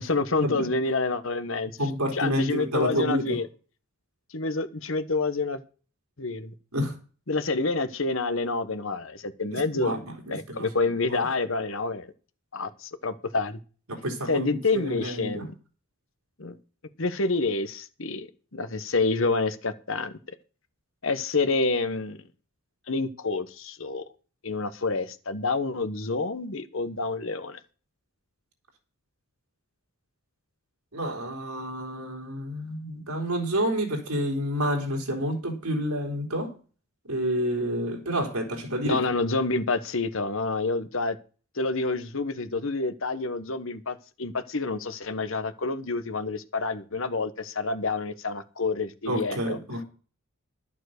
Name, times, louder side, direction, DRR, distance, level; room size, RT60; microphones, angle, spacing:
voice 1, 0.0-1.7 2.1-3.5 4.3-5.6 6.2-6.5 7.3-9.9 10.3-12.1 12.5-13.6 14.3-15.5 16.4-16.6 17.0-20.1 21.0-22.2 22.9-24.0 24.4-27.6 38.8-41.2 41.5-49.6, left 3 dB, 65° left, 1.1 m, -28 dB
voice 2, 1.8-3.4 6.7-6.9 9.5-11.3 13.9-15.5 30.9-36.5 37.1-39.2 49.1-49.8, equal, 90° right, 3.6 m, -29 dB
12.0 x 7.4 x 6.4 m
head